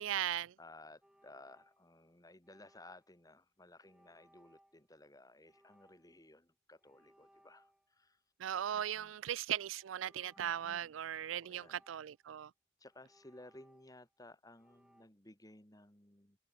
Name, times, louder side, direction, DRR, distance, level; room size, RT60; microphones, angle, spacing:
voice 1, 0.0-0.5 8.4-12.5, right 10 dB, 85° right, 0.4 m, -38 dB
voice 2, 0.6-8.2 8.7-9.2 10.3-10.9 11.3-11.8 12.8-16.4, left 2 dB, 20° left, 2.8 m, -58 dB
sound 1, 1.0-2.1 2.4-3.2 3.8-4.9 5.5-6.3 6.8-8.1 8.4-9.2 9.8-10.9 11.4-12.4 12.9-14.2 14.6-15.1, equal, 5° right, 5.9 m, -69 dB
head